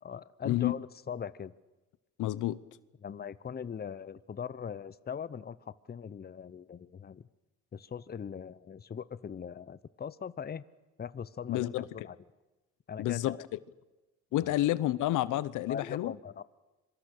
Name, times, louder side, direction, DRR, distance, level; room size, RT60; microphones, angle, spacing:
voice 1, 0.0-1.5 3.0-7.3 7.7-10.6 11.0-12.2 12.9-13.4 14.4-14.5 15.7-16.4, left 7 dB, 30° left, 0.8 m, -41 dB
voice 2, 2.2-2.6 11.5-12.1 13.0-13.4 14.3-16.1, left 14 dB, 85° left, 0.9 m, -29 dB
26.0 x 23.5 x 6.6 m
cardioid pair, 90°, 30 cm